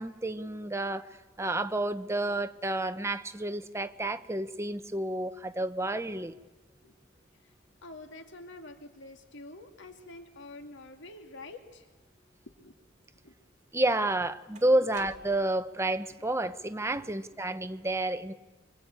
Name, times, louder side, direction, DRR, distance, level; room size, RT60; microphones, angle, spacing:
voice 1, 0.0-6.3 13.7-18.3, right 1 dB, 15° right, 1.0 m, -30 dB
voice 2, 7.8-11.9 12.6-12.7 13.2-13.3 14.7-14.9 17.0-17.1, left 2 dB, 65° left, 2.2 m, -47 dB
sound 1, 13.6-13.7 14.5-15.7, right 3 dB, 40° right, 2.5 m, -52 dB
25.0 x 25.0 x 8.9 m
head